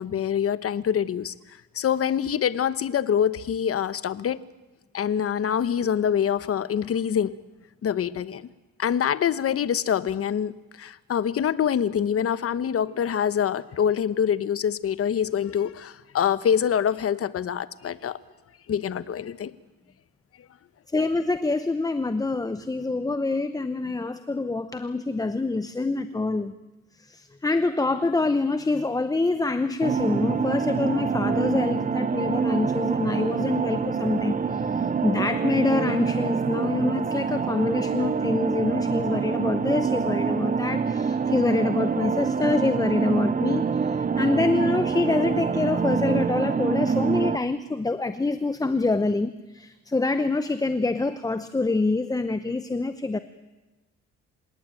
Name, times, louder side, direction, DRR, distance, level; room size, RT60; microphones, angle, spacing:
voice 1, 0.0-1.3 1.7-4.4 4.9-7.3 7.8-8.5 8.8-18.2 18.7-19.5, left 8 dB, 50° left, 15 dB, 1.0 m, -25 dB
voice 2, 20.9-26.5 27.0-53.2, left 3 dB, 10° left, 11 dB, 0.7 m, -26 dB
sound 1, 29.8-47.4, right 5 dB, 25° right, 0.8 m, -26 dB
27.0 x 18.0 x 9.1 m, 1.1 s
cardioid pair, 135°, 30 cm